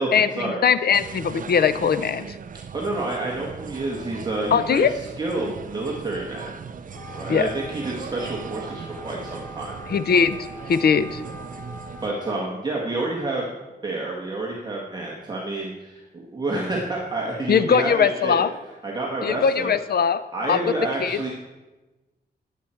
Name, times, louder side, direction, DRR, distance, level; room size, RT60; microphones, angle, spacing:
voice 1, 0.1-2.4 4.5-4.9 7.3-7.5 9.9-10.4 10.7-11.2 17.5-18.5 19.2-20.2 20.5-20.6 21.0-21.2, left 7 dB, 65° left, 13 dB, 0.6 m, -20 dB
sound 1, 0.9-12.1, right 6 dB, 50° right, 0.5 m, -38 dB
voice 2, 2.7-6.5 7.1-9.8 12.0-13.5 13.8-18.5 18.8-19.8 20.3-21.3, right 2 dB, 25° right, -3 dB, 1.6 m, -29 dB
Wind instrument woodwind instrument, 6.8-12.5, left 1 dB, 20° left, 1.7 m, -42 dB
19.0 x 7.5 x 4.5 m, 1.1 s
wide cardioid pair, 160°, 17 cm